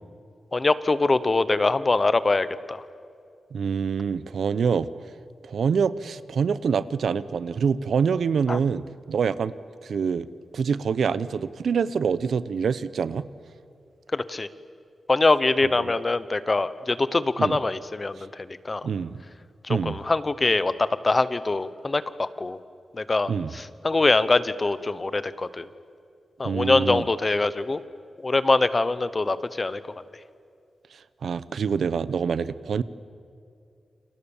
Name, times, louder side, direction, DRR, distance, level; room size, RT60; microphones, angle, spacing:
voice 1, 0.5-2.8 8.5-8.6 14.1-14.5 15.1-18.9 19.6-22.6 22.9-25.7 26.4-27.8 28.2-29.8, left 3 dB, 30° left, 15 dB, 1.0 m, -23 dB
voice 2, 3.5-4.9 5.4-9.5 9.8-10.3 10.5-13.3 15.8-15.9 17.4-17.6 18.8-19.2 19.7-20.0 23.3-23.5 26.4-27.0 31.2-32.8, right 6 dB, 75° right, 16 dB, 0.8 m, -25 dB
29.5 x 27.0 x 7.3 m, 2.4 s
wide cardioid pair, 130°, 0 cm